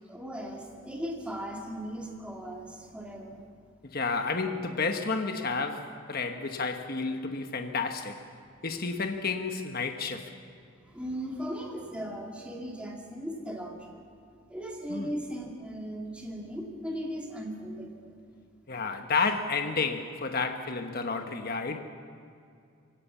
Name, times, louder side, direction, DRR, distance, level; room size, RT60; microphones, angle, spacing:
voice 1, 0.1-3.4 10.9-13.9 14.5-18.1, equal, 5° right, 2.6 m, -37 dB
voice 2, 3.9-8.2 8.6-10.3 14.9-15.1 18.7-21.8, left 4 dB, 45° left, 1.2 m, -31 dB
23.5 x 17.5 x 7.2 m
head